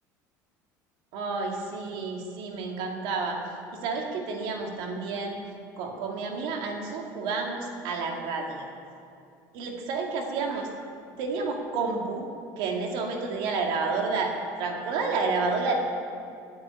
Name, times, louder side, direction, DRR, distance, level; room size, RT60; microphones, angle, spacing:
voice 1, 1.1-3.4 3.7-5.4 5.8-8.7 9.5-10.7 11.2-12.3 12.6-14.3 14.6-15.7, right 4 dB, 70° right, 1 dB, 2.2 m, -30 dB
9.3 x 8.8 x 9.2 m, 2.5 s
supercardioid pair, 110°, 9 cm